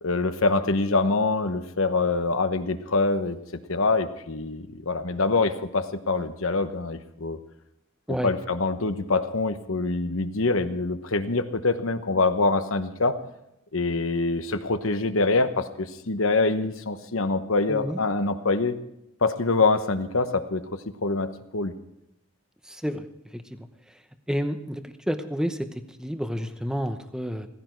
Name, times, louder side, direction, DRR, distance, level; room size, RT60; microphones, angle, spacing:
voice 1, 0.0-3.4 3.7-7.4 8.2-13.2 13.7-18.8 19.2-21.7, left 3 dB, 70° left, 10 dB, 1.1 m, -25 dB
voice 2, 17.7-18.0 22.6-24.0 24.3-27.5, equal, 5° right, 9 dB, 0.9 m, -30 dB
16.5 x 15.5 x 4.6 m, 0.83 s
head